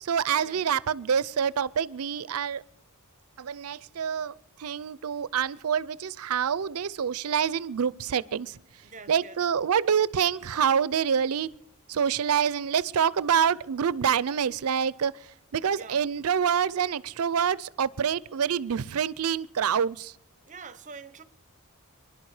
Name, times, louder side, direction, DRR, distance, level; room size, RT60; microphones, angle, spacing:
voice 1, 0.0-2.6 3.4-8.6 9.1-11.5 11.9-15.2 15.5-20.1, right 7 dB, 80° right, 0.5 m, -26 dB
voice 2, 8.8-9.4 15.7-16.1 20.4-21.2, right 4 dB, 35° right, 0.8 m, -45 dB
25.5 x 11.0 x 4.9 m
head